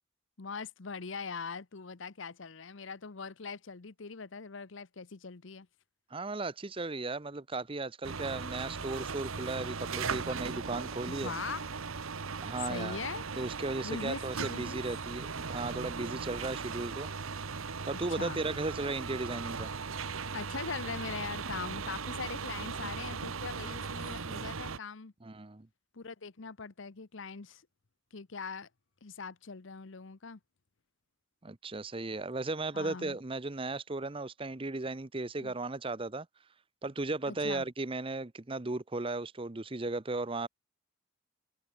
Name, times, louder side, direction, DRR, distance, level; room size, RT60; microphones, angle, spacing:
voice 1, 0.4-5.7 11.1-11.6 12.7-13.3 13.8-14.8 18.1-18.4 20.3-25.1 25.9-27.6 28.1-28.7 29.0-30.4 32.7-33.2 35.4-35.5 37.3-37.6, left 5 dB, 65° left, 0.9 m, -41 dB
voice 2, 6.1-11.3 12.4-13.0 13.4-17.1 17.8-19.7 25.2-25.7 31.4-36.3 36.8-40.5, right 2 dB, 25° right, 0.8 m, -36 dB
sound 1, 8.0-24.8, right 5 dB, 85° right, 1.1 m, -38 dB
head